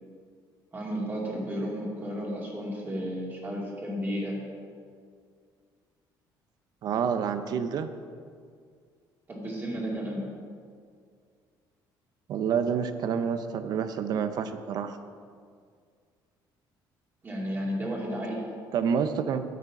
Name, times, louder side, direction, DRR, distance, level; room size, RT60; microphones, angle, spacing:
voice 1, 0.7-4.4 9.3-10.3 17.2-18.5, equal, 25° right, -3 dB, 2.4 m, -33 dB
voice 2, 6.8-7.9 12.3-15.0 18.7-19.4, right 7 dB, 55° right, 10 dB, 0.6 m, -28 dB
9.1 x 8.2 x 5.9 m, 2.1 s
cardioid pair, 150°, 8 cm